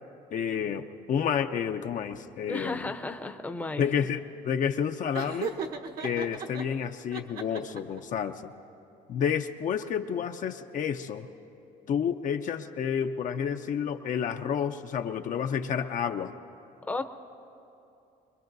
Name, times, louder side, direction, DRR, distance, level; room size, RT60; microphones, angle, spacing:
voice 1, 0.3-2.9 3.8-5.5 6.0-8.5 9.1-11.3 11.9-16.3, left 8 dB, 50° left, 6 dB, 0.6 m, -30 dB
voice 2, 2.5-3.8 16.8-17.0, left 2 dB, 10° left, 6 dB, 0.7 m, -33 dB
Laughter, 5.1-6.6 7.1-8.0, right 5 dB, 60° right, 1.2 m, -36 dB
25.0 x 21.5 x 2.7 m, 2.8 s
cardioid pair, 110°, 17 cm